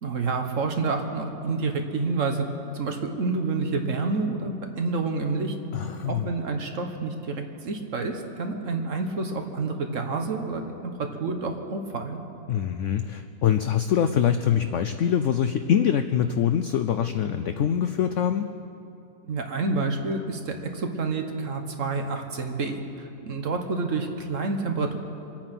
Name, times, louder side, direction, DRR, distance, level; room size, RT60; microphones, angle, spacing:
voice 1, 0.0-2.5 2.7-5.5 5.8-10.6 11.0-12.2 19.2-25.0, right 3 dB, 50° right, 4 dB, 1.4 m, -28 dB
voice 2, 5.7-6.3 12.5-18.5, left 9 dB, 85° left, 9 dB, 0.6 m, -24 dB
25.5 x 8.9 x 5.9 m, 2.8 s
omnidirectional pair, 1.8 m